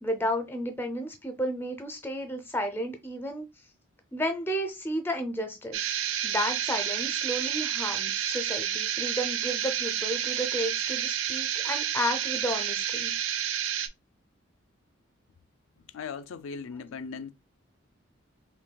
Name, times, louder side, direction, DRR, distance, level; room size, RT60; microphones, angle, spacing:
voice 1, 0.0-3.4 4.1-5.9 6.2-13.1, equal, 10° left, 0.5 m, -32 dB
sound 1, 5.7-13.9, right 10 dB, 85° right, 0.4 m, -30 dB
voice 2, 15.8-17.3, left 5 dB, 80° left, 0.4 m, -38 dB
5.7 x 2.3 x 2.2 m
head